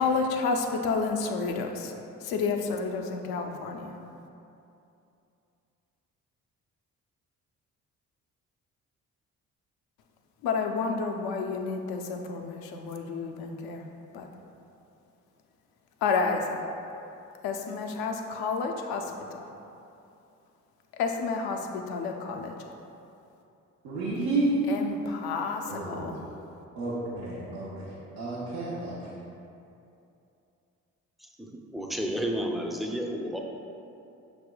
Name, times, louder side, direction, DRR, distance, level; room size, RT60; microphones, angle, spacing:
voice 1, 0.0-1.9 2.2-4.0 10.4-13.8 14.1-14.3 16.0-16.6 17.4-19.5 20.9-22.5 24.7-26.2, left 4 dB, 75° left, 3 dB, 0.5 m, -30 dB
voice 2, 23.8-24.6 25.7-26.3 26.8-29.1, right 2 dB, 85° right, -9 dB, 0.7 m, -31 dB
voice 3, 31.4-33.4, equal, ahead, 1 dB, 0.4 m, -31 dB
5.8 x 3.4 x 2.2 m, 2.7 s
hypercardioid pair, 45°, 38 cm